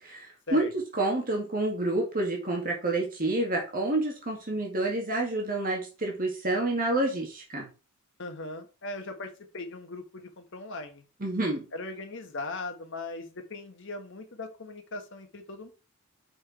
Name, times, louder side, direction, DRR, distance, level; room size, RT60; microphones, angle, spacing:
voice 1, 0.0-7.7 11.2-11.6, right 2 dB, 40° right, 0 dB, 1.8 m, -28 dB
voice 2, 8.2-11.0 11.7-15.7, left 2 dB, 60° left, 6 dB, 1.4 m, -39 dB
6.6 x 4.5 x 4.4 m, 0.31 s
head